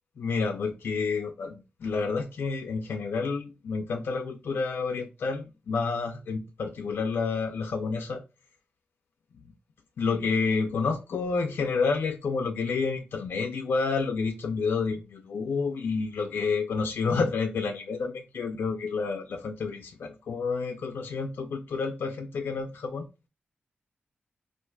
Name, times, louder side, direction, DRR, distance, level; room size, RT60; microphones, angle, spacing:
voice 1, 0.2-8.2 10.0-23.1, left 4 dB, 70° left, 0.4 m, -29 dB
4.5 x 2.4 x 2.2 m
wide cardioid pair, 155°, 4 cm